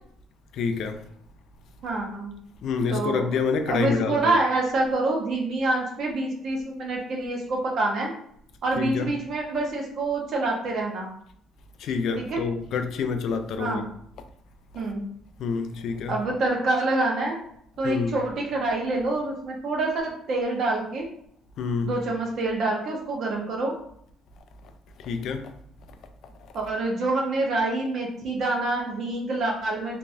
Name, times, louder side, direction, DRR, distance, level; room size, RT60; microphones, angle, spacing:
voice 1, 0.5-1.0 2.6-4.3 8.8-9.1 11.8-13.9 15.4-16.2 17.8-18.1 21.6-22.0 25.0-25.5, left 5 dB, 60° left, 0.4 m, -27 dB
voice 2, 1.8-2.3 2.9-3.3 3.7-8.1 8.6-11.1 12.2-12.4 13.6-13.8 14.7-15.0 16.1-17.4 17.8-21.1 21.8-23.7 26.5-30.0, right 2 dB, 50° right, 1.0 m, -26 dB
3.5 x 3.1 x 2.6 m
cardioid pair, 140°, 0 cm